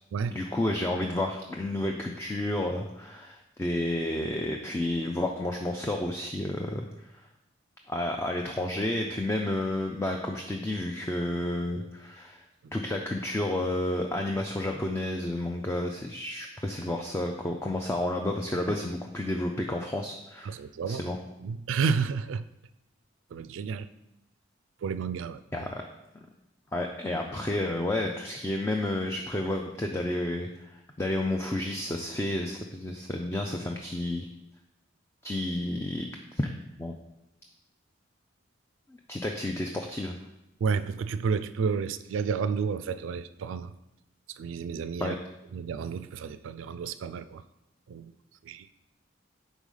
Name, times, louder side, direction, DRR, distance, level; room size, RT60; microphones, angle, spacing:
voice 1, 0.3-7.1 7.9-12.4 12.7-20.6 20.8-21.2 25.5-25.8 26.1-26.3 26.7-34.3 35.2-36.1 36.4-36.5 36.8-36.9 39.1-40.2 45.0-45.2, left 1 dB, 15° left, 2 dB, 0.3 m, -31 dB
voice 2, 20.4-21.0 21.4-22.4 23.3-23.9 24.8-25.4 40.6-43.7 44.4-45.2 45.5-47.4 47.9-48.1 48.5-48.7, right 5 dB, 80° right, 14 dB, 0.3 m, -31 dB
4.8 x 4.1 x 5.4 m, 0.90 s
head